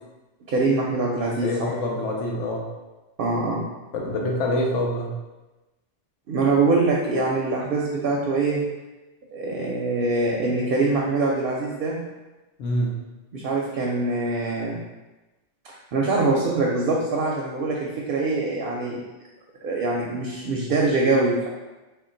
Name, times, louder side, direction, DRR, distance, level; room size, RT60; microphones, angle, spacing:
voice 1, 0.5-1.7 3.2-3.6 6.3-8.6 9.3-12.0 13.3-14.8 15.7-19.0 19.6-21.5, right 3 dB, 60° right, -2 dB, 0.7 m, -23 dB
voice 2, 1.4-2.6 3.9-5.1 12.6-12.9, left 1 dB, 85° left, -1 dB, 1.1 m, -25 dB
3.6 x 2.3 x 3.8 m, 1.1 s
omnidirectional pair, 1.2 m